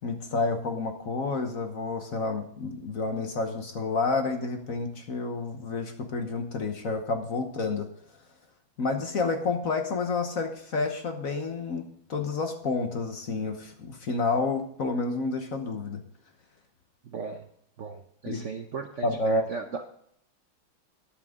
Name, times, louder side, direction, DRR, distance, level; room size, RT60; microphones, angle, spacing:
voice 1, 0.0-7.9 8.8-16.0 18.3-18.4 19.0-19.5, left 3 dB, 50° left, 6 dB, 1.2 m, -29 dB
voice 2, 17.1-17.5 17.8-19.1 19.5-19.8, right 5 dB, 60° right, 5 dB, 0.8 m, -36 dB
13.0 x 10.5 x 3.7 m, 0.68 s
omnidirectional pair, 2.2 m